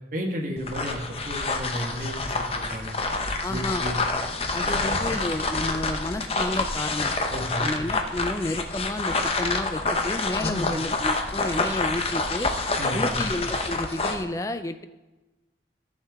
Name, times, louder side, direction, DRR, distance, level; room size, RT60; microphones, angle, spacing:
voice 1, 0.1-3.0 3.5-4.0 4.6-4.9 7.3-7.8 10.4-10.7 12.8-13.3, equal, 45° right, 0 dB, 1.6 m, -33 dB
sound 1, 0.6-14.2, left 3 dB, 35° left, 0.7 m, -27 dB
voice 2, 3.4-4.2 4.5-7.2 7.6-12.5 12.9-14.8, left 2 dB, 20° left, 10 dB, 0.4 m, -31 dB
14.0 x 6.6 x 3.5 m, 1.1 s
head